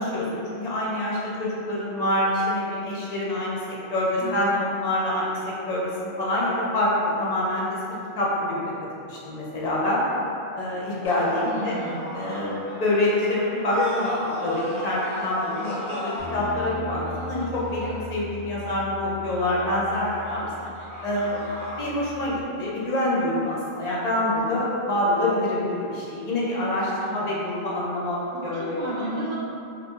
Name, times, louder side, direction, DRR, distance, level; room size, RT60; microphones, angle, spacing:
voice 1, 0.0-6.9 7.2-7.8 8.2-8.7 9.0-10.0 10.5-11.8 12.1-14.1 14.4-15.7 16.0-20.5 21.0-21.5 21.8-28.8, left 1 dB, 45° left, -6 dB, 0.7 m, -26 dB
voice 2, 4.1-4.4 11.4-12.1 27.0-27.3 28.3-29.4, right 1 dB, 60° right, -7 dB, 0.9 m, -33 dB
sound 1, 11.0-18.3 19.9-21.8, left 1 dB, 15° left, 1.1 m, -35 dB
Bass guitar, 16.2-22.4, left 4 dB, 90° right, 0.9 m, -40 dB
2.6 x 2.5 x 3.7 m, 2.7 s
omnidirectional pair, 1.1 m